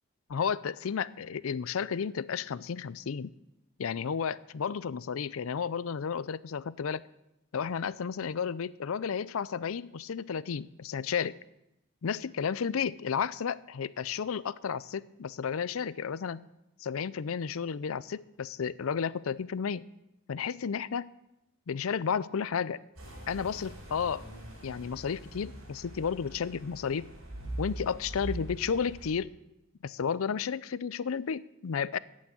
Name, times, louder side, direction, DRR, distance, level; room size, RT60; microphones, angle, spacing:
voice 1, 0.3-3.3 3.8-7.0 7.5-11.4 12.0-16.4 16.8-19.8 20.3-21.1 21.7-22.8 23.3-24.3 24.6-27.1 27.6-29.3 29.8-32.0, left 6 dB, 75° left, 19 dB, 0.5 m, -32 dB
sound 1, 23.0-29.1, right 1 dB, 85° right, 5.9 m, -42 dB
11.5 x 8.6 x 8.9 m, 0.87 s
head